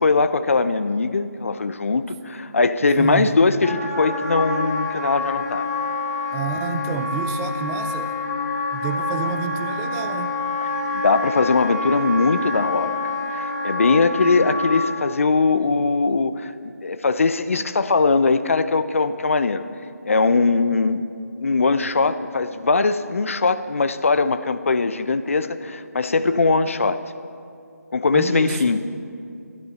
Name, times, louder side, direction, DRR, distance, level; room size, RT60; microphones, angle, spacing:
voice 1, 0.0-5.7 10.9-19.6 20.1-21.1 21.4-27.0 27.9-28.8, left 4 dB, 55° left, 12 dB, 0.7 m, -20 dB
voice 2, 3.0-3.4 6.3-8.2 8.7-10.3 28.1-28.8, right 5 dB, 10° right, 7 dB, 0.3 m, -29 dB
Wind instrument woodwind instrument, 3.6-14.9, left 3 dB, 15° left, 1.5 m, -27 dB
22.0 x 13.0 x 4.1 m, 2.4 s
figure-of-eight pair, 155°, 9 cm